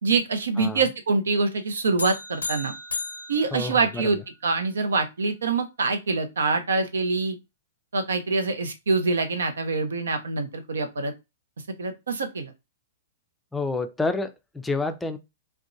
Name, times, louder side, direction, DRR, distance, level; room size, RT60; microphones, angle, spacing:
voice 1, 0.0-2.7 3.3-7.4 7.9-11.1 11.8-12.5, right 4 dB, 80° right, 0.6 m, -25 dB
sound 1, 2.0-4.4, left 4 dB, 90° left, 0.5 m, -35 dB
voice 2, 3.5-4.0 13.5-15.2, left 3 dB, 10° left, 0.4 m, -29 dB
2.6 x 2.1 x 2.5 m
hypercardioid pair, 115°, 0 cm